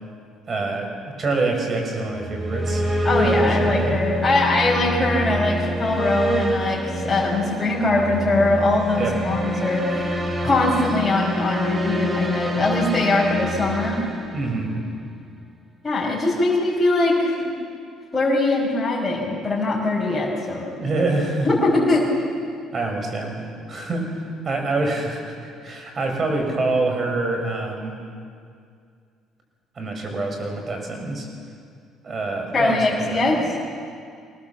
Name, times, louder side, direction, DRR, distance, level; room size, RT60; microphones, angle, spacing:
voice 1, 0.5-2.8 3.2-4.0 9.0-9.3 14.3-14.7 20.8-21.5 22.7-28.0 29.8-31.3 32.0-33.5, right 2 dB, 40° right, 3 dB, 6.2 m, -26 dB
sound 1, 2.1-15.0, equal, 25° right, 3.7 m, -26 dB
voice 2, 3.0-10.1 10.4-14.0 15.8-17.3 18.1-20.7 21.4-22.1 32.5-33.5, left 2 dB, 20° left, -5 dB, 5.7 m, -21 dB
25.0 x 18.5 x 7.4 m, 2.3 s
supercardioid pair, 75°, 0 cm